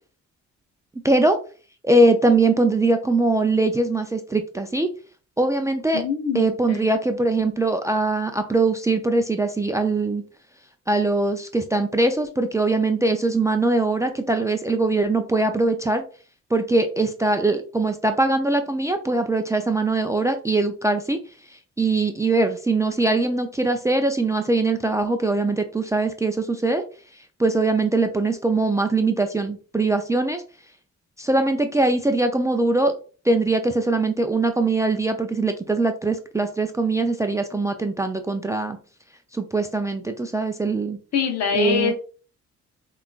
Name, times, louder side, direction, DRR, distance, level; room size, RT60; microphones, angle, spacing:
voice 1, 1.0-1.4 1.8-4.9 5.4-6.0 6.3-10.2 10.9-16.0 16.5-21.2 21.5-26.8 27.4-30.4 31.2-32.9 33.2-38.8 39.3-41.0 41.5-41.9, right 2 dB, 10° right, 6 dB, 0.4 m, -22 dB
voice 2, 5.9-6.9 41.1-41.9, left 6 dB, 60° left, 4 dB, 1.0 m, -24 dB
5.7 x 2.5 x 2.4 m, 0.38 s
cardioid pair, 90°, 30 cm